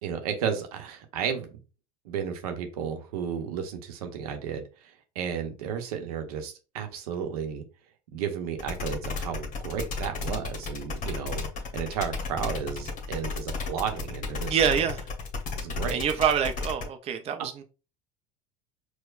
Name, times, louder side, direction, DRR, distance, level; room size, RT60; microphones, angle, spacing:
voice 1, 0.0-1.5 2.0-7.6 8.1-11.5 11.7-14.7 15.5-16.0, right 7 dB, 80° right, 5 dB, 0.8 m, -33 dB
sound 1, 8.6-16.8, left 4 dB, 45° left, 0.9 m, -33 dB
voice 2, 14.5-15.0 15.9-17.6, right 8 dB, 30° right, 7 dB, 0.5 m, -26 dB
4.5 x 2.1 x 2.4 m, 0.32 s
hypercardioid pair, 85°, 19 cm